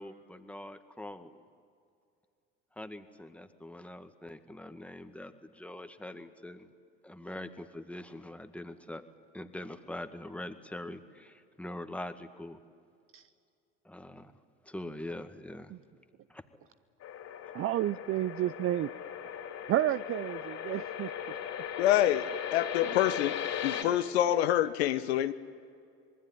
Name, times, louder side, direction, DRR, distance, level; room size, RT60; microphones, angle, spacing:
voice 1, 0.0-1.4 2.8-6.7 7.0-9.0 9.3-12.6 13.9-14.3 14.6-15.7 16.3-16.4, left 1 dB, 5° left, 8 dB, 1.8 m, -43 dB
Reverse Cymbal Crash Sweep, 17.0-23.8, left 9 dB, 55° left, 3.6 m, -38 dB
voice 2, 17.5-18.9 19.7-21.1 23.7-23.9, right 13 dB, 45° right, 16 dB, 0.6 m, -31 dB
voice 3, 21.8-23.4 23.6-25.3, left 12 dB, 85° left, 10 dB, 0.9 m, -27 dB
26.0 x 20.5 x 9.6 m, 2.3 s
hypercardioid pair, 80°, 31 cm